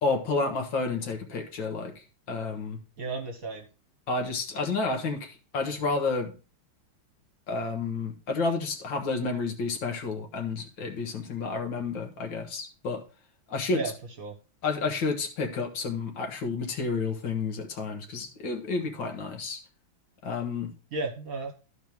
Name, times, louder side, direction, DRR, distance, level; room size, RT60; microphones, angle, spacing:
voice 1, 0.0-2.8 4.1-6.3 7.5-13.0 13.5-13.8 14.6-19.6 20.2-20.7, left 4 dB, 70° left, 4 dB, 2.0 m, -30 dB
voice 2, 3.0-3.7 13.7-14.4 20.9-21.5, right 3 dB, 50° right, 2 dB, 1.5 m, -34 dB
13.5 x 4.7 x 3.5 m, 0.34 s
omnidirectional pair, 2.2 m